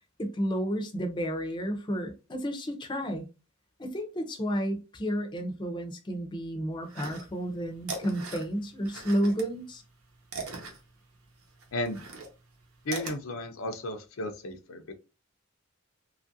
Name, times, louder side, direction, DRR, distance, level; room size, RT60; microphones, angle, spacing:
voice 1, 0.2-3.3 3.8-9.8, equal, 20° left, 0.5 m, -31 dB
sound 1, 6.9-7.5 7.8-9.5 9.8-13.2, right 3 dB, 80° right, 0.9 m, -40 dB
voice 2, 12.8-15.0, left 1 dB, 70° left, 0.5 m, -34 dB
3.0 x 2.4 x 2.6 m
head